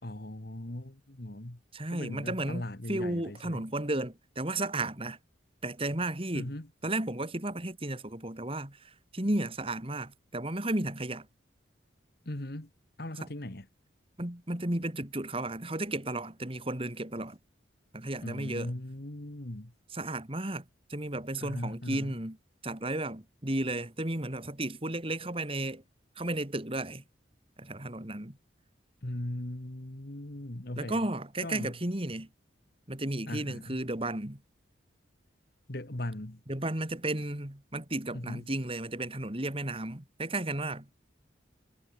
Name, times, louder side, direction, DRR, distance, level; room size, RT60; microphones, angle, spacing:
voice 1, 0.0-1.6 1.9-3.7 6.3-6.7 12.3-12.7 13.0-13.7 18.2-19.7 21.4-22.1 29.0-31.1 31.4-31.8 33.3-33.8 35.7-36.4 38.1-38.5, left 1 dB, 55° left, 1.9 m, -39 dB
voice 2, 1.7-5.2 5.6-6.5 6.8-11.3 13.2-13.3 14.2-17.4 17.9-18.7 19.9-20.6 20.9-22.4 22.6-25.8 26.2-27.0 27.6-28.4 30.8-32.3 32.9-34.4 36.5-40.9, right 1 dB, 30° right, 2.4 m, -33 dB
head